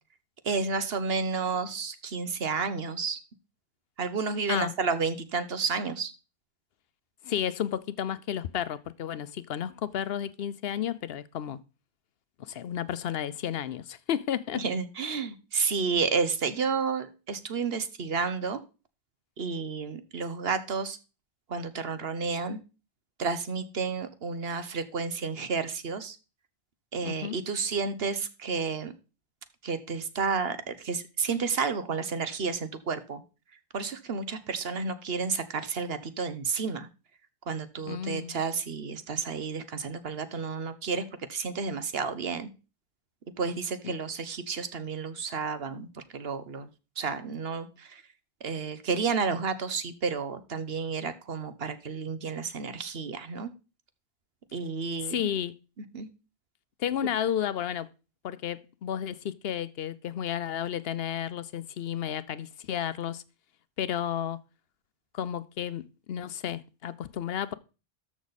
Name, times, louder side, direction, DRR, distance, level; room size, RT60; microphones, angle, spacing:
voice 1, 0.4-3.2 4.0-6.1 14.5-18.6 19.4-21.0 21.5-22.6 23.2-26.2 26.9-28.9 29.6-33.2 33.7-36.9 37.5-41.0 41.3-42.5 43.4-46.7 47.0-48.0 48.4-53.5 54.5-55.2 55.9-56.1, right 5 dB, 75° right, 1.3 m, -31 dB
voice 2, 7.2-11.6 12.4-14.6 27.0-27.4 37.9-38.4 43.8-44.0 55.0-55.5 56.8-57.9 58.2-63.2 63.8-64.4 65.1-67.5, left 10 dB, 70° left, 0.8 m, -32 dB
13.5 x 6.2 x 4.1 m
omnidirectional pair, 1.0 m